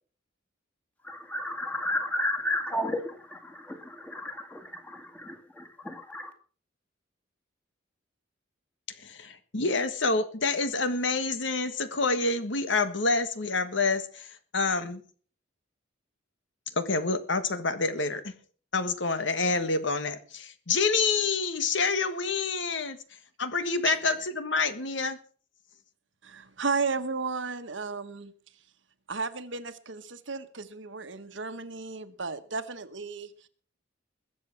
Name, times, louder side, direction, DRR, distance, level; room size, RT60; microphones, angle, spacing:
voice 1, 1.0-6.3, left 1 dB, 10° left, 2.1 m, -33 dB
voice 2, 9.0-15.0 16.8-18.3 18.7-23.0 23.4-25.2, left 4 dB, 65° left, 1.5 m, -27 dB
voice 3, 23.8-24.1 26.2-28.3 29.1-33.3, right 4 dB, 70° right, 1.3 m, -34 dB
21.0 x 7.7 x 5.9 m
head